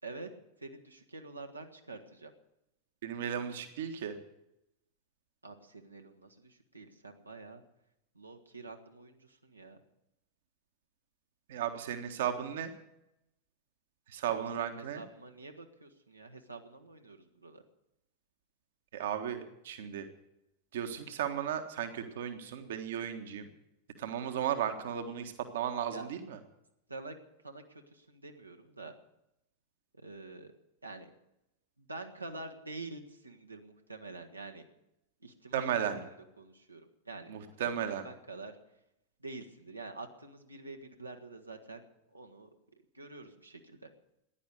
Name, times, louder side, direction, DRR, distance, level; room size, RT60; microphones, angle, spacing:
voice 1, 0.6-2.3 5.4-7.6 8.1-9.8 14.3-17.6 25.9-26.1 26.9-27.2 27.4-28.9 29.9-30.5 30.8-31.1 31.8-34.6 35.2-38.5 39.2-42.5 42.9-43.9, right 3 dB, 85° right, 4 dB, 1.5 m, -47 dB
voice 2, 3.0-4.2 11.5-12.7 14.1-15.0 18.9-20.1 20.7-23.5 24.0-26.4 35.5-36.0 37.3-38.0, right 9 dB, 60° right, 7 dB, 1.5 m, -35 dB
15.5 x 10.5 x 8.2 m, 0.85 s
figure-of-eight pair, 90°, 0 cm